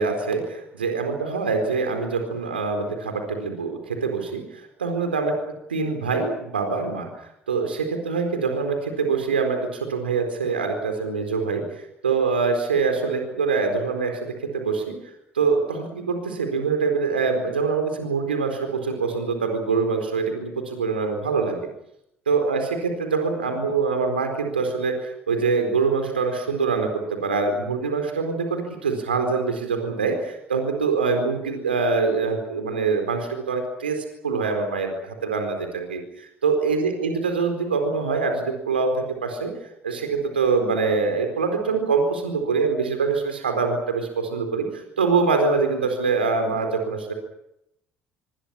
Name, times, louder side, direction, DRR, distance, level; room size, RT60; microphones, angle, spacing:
voice 1, 0.0-5.3 5.7-15.0 15.3-21.6 22.3-39.5 39.8-47.1, right 4 dB, 85° right, 5 dB, 4.3 m, -24 dB
26.5 x 25.0 x 6.0 m, 0.80 s
figure-of-eight pair, 55°, 6 cm